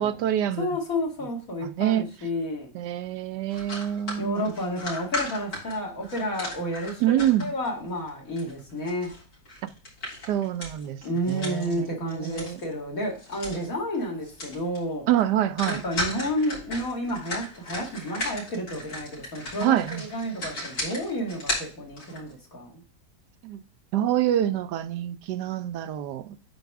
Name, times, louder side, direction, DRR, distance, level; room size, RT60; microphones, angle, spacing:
voice 1, 0.0-0.8 1.6-2.1 2.7-4.4 7.0-7.5 10.3-11.0 11.3-12.6 15.1-15.8 19.6-20.0 23.4-23.6 23.9-26.4, right 11 dB, 80° right, 1.2 m, -26 dB
voice 2, 0.6-2.7 4.2-9.1 11.0-15.1 15.6-22.8, equal, 55° left, 2.6 m, -31 dB
sound 1, 3.5-7.7 8.1-12.7 13.0-13.7 13.9-14.0 14.2-14.8 15.1-15.2 15.6-22.3, left 1 dB, 90° left, 4.2 m, -36 dB
9.3 x 4.6 x 3.5 m
omnidirectional pair, 1.8 m